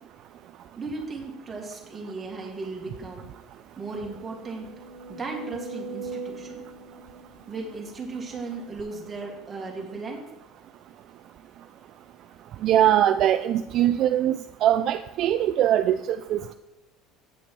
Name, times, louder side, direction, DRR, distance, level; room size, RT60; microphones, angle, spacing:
voice 1, 0.8-3.2 3.8-4.7 5.1-6.6 7.5-10.2, right 3 dB, 20° right, 0 dB, 1.7 m, -36 dB
sound 1, 2.8-2.9 3.2-3.3 3.9-8.1 8.8-8.9, right 3 dB, 70° right, 0.7 m, -40 dB
voice 2, 12.6-16.5, right 11 dB, 50° right, 9 dB, 0.3 m, -22 dB
8.4 x 6.0 x 4.6 m, 1.0 s
cardioid pair, 140°, 0 cm